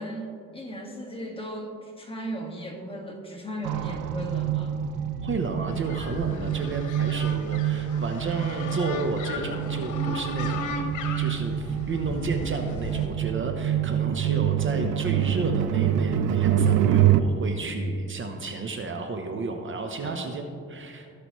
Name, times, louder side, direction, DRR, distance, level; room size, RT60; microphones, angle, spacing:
voice 1, 0.0-4.8 20.0-20.3, equal, 20° left, 0 dB, 1.8 m, -36 dB
sound 1, 3.6-17.2, right 10 dB, 85° right, 0.6 m, -26 dB
voice 2, 5.2-10.8 11.2-20.4 20.7-21.1, right 3 dB, 40° right, 5 dB, 0.8 m, -32 dB
sound 2, 5.7-13.1, left 4 dB, 80° left, 1.2 m, -36 dB
16.5 x 5.9 x 3.1 m, 2.5 s
cardioid pair, 90°, 30 cm